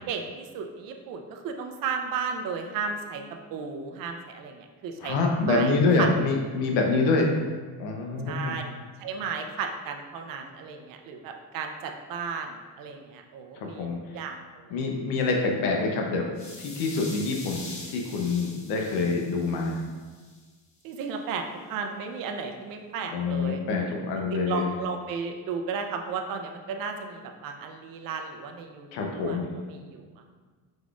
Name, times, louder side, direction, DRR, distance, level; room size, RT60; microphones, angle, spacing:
voice 1, 0.1-3.2 3.5-5.2 5.5-6.1 8.2-8.6 9.0-13.9 14.1-14.8 20.8-21.4 21.7-23.6 24.1-29.4 29.7-30.2, right 5 dB, 55° right, 4 dB, 0.5 m, -34 dB
voice 2, 5.0-7.3 7.8-8.5 13.6-14.0 14.7-16.3 16.6-17.6 17.9-19.8 23.1-24.7 28.9-29.5, left 3 dB, 85° left, 1 dB, 0.8 m, -26 dB
sound 1, 16.3-20.4, left 2 dB, 45° left, 1.0 m, -44 dB
4.9 x 4.0 x 2.4 m, 1.4 s
cardioid pair, 155°, 40 cm